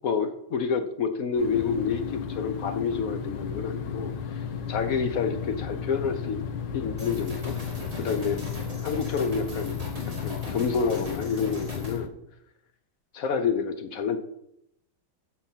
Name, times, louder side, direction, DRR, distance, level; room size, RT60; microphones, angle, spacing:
voice 1, 0.0-6.4 6.7-8.4 8.8-9.8 10.2-12.1 13.1-14.2, left 5 dB, 65° left, 9 dB, 0.8 m, -29 dB
Ceiling Fan Closeup Hum, 1.4-12.1, left 7 dB, 80° left, 1.7 m, -34 dB
sound 1, 7.0-12.0, left 2 dB, 20° right, 2.0 m, -40 dB
13.5 x 4.6 x 5.6 m, 0.78 s
omnidirectional pair, 2.3 m